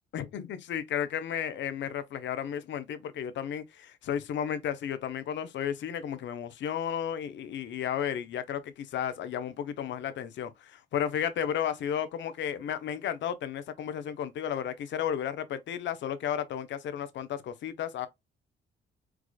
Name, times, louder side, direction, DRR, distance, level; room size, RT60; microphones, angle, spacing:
voice 1, 0.1-18.1, left 9 dB, 65° left, 0.6 m, -33 dB
4.7 x 2.4 x 2.2 m
cardioid pair, 90°, 20 cm